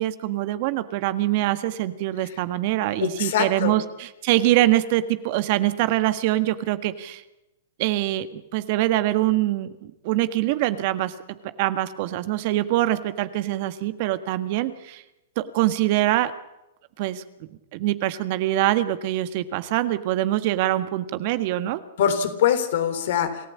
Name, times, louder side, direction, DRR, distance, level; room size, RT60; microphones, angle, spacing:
voice 1, 0.0-7.2 7.8-11.1 11.6-15.0 15.4-16.3 17.0-17.2 17.7-21.8, right 15 dB, 50° right, 12 dB, 1.6 m, -24 dB
voice 2, 3.0-3.7 22.0-23.4, left 9 dB, 65° left, 8 dB, 3.6 m, -23 dB
27.5 x 14.5 x 8.6 m, 0.91 s
hypercardioid pair, 125°, 0 cm